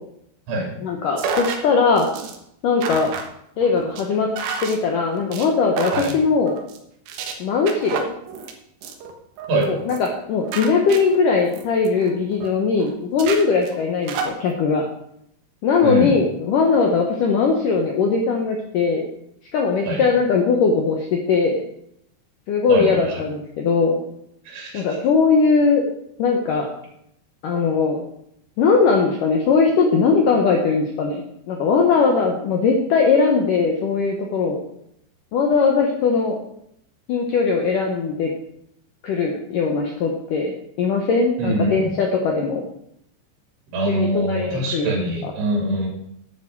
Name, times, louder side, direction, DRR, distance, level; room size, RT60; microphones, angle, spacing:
voice 1, 0.8-2.1 2.6-3.1 3.6-4.3 4.6-6.6 7.4-8.1 9.6-14.9 15.6-19.1 19.5-21.6 22.5-24.0 24.7-25.8 26.2-26.7 27.4-28.0 28.6-34.6 35.3-36.4 37.1-38.3 39.0-40.5 40.8-42.6 43.8-44.9 45.2-45.3, left 4 dB, 70° left, 2 dB, 2.0 m, -20 dB
sound 1, 1.2-1.6 2.0-2.4 2.8-3.3 3.6-4.0 4.4-4.7 5.1-5.5 5.8-6.1 6.4-6.8 7.1-7.3 7.7-8.5 8.8-9.1 9.4-9.6 9.9-10.2 10.5-12.5 12.8-12.9 13.2-14.3, right 5 dB, 70° right, 3.3 m, -30 dB
voice 2, 22.7-23.1 24.5-24.8 41.4-41.9 43.7-45.9, right 1 dB, 85° right, -2 dB, 5.1 m, -23 dB
10.5 x 9.8 x 4.7 m, 0.76 s
omnidirectional pair, 5.3 m